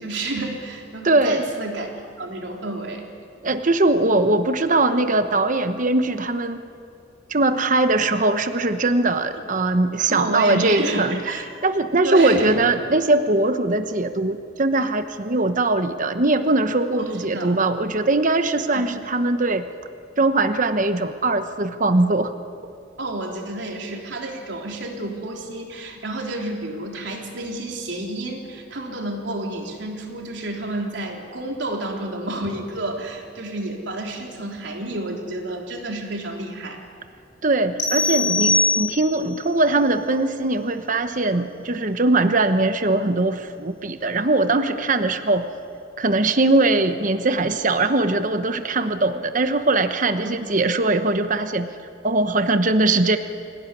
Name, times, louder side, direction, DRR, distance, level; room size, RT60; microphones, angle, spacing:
voice 1, 0.0-1.9 2.2-3.1 10.1-11.4 12.0-12.6 17.0-17.6 18.7-18.9 23.0-36.8 45.3-45.4 50.2-50.4, right 2 dB, 75° right, 1 dB, 3.8 m, -30 dB
voice 2, 1.0-1.5 3.4-6.6 7.3-19.6 20.2-22.3 37.4-45.5 46.0-51.7 52.0-53.2, right 2 dB, 45° right, 9 dB, 1.0 m, -21 dB
sound 1, 37.8-39.3, left 2 dB, 80° left, 4.1 m, -21 dB
25.0 x 17.5 x 9.9 m, 2.3 s
head